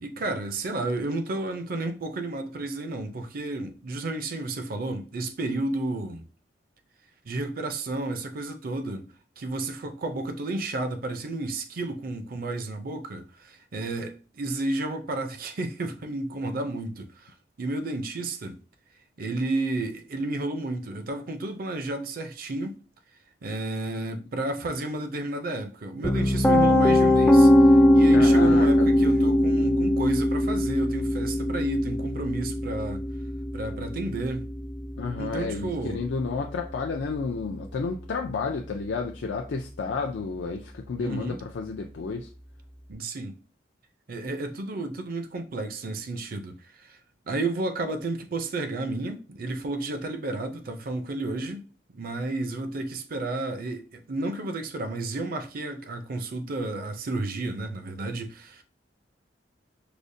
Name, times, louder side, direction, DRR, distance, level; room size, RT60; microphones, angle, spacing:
voice 1, 0.0-6.2 7.3-18.6 19.2-22.8 23.4-33.1 33.5-34.5 35.2-36.0 41.0-41.4 42.9-43.4 44.1-47.0 47.3-58.6, right 2 dB, 55° right, 0.5 m, -32 dB
Piano, 26.0-38.0, left 1 dB, 10° left, 0.3 m, -22 dB
voice 2, 28.1-29.1 35.0-42.3, left 4 dB, 85° left, 0.4 m, -31 dB
4.9 x 2.1 x 2.6 m
head